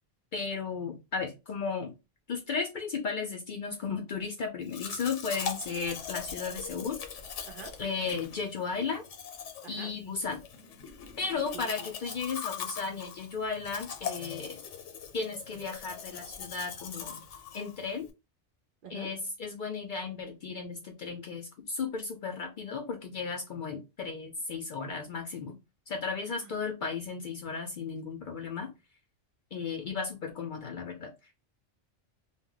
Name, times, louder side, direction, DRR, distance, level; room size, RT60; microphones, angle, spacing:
voice 1, 0.3-1.9 2.3-7.0 7.8-9.0 9.7-10.4 11.2-14.6 15.1-17.2 17.5-18.1 18.9-25.6 25.9-28.7 29.5-31.1, left 5 dB, 55° left, 0.5 m, -35 dB
Domestic sounds home sounds, 4.7-18.1, left 7 dB, 80° left, 1.0 m, -41 dB
voice 2, 11.3-11.7 18.8-19.1 26.3-26.5, right 6 dB, 60° right, 0.6 m, -46 dB
2.2 x 2.2 x 3.7 m
omnidirectional pair, 1.2 m